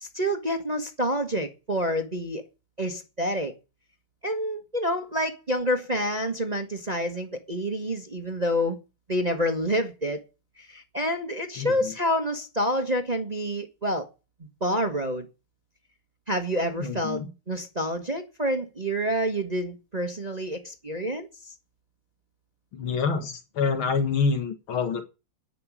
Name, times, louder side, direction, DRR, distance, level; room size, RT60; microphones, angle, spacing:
voice 1, 0.0-2.4 2.8-3.5 4.2-8.8 9.1-10.2 10.6-14.1 14.6-15.3 16.3-21.5, equal, 25° right, 1.1 m, -28 dB
voice 2, 11.6-11.9 16.8-17.3 22.7-25.0, left 5 dB, 70° left, 2.5 m, -27 dB
10.5 x 6.1 x 8.4 m
omnidirectional pair, 2.4 m